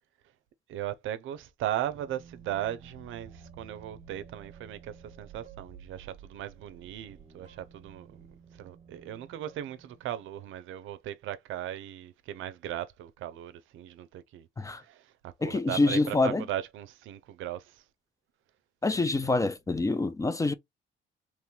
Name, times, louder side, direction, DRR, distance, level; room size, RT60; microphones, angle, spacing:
voice 1, 0.7-8.3 8.5-17.8 19.0-19.1, right 12 dB, 80° right, 0.5 m, -37 dB
sound 1, 1.9-10.4, right 6 dB, 35° right, 0.7 m, -52 dB
voice 2, 15.4-16.4 18.8-20.5, left 3 dB, 15° left, 0.3 m, -26 dB
3.0 x 2.2 x 3.0 m
cardioid pair, 90°, 20 cm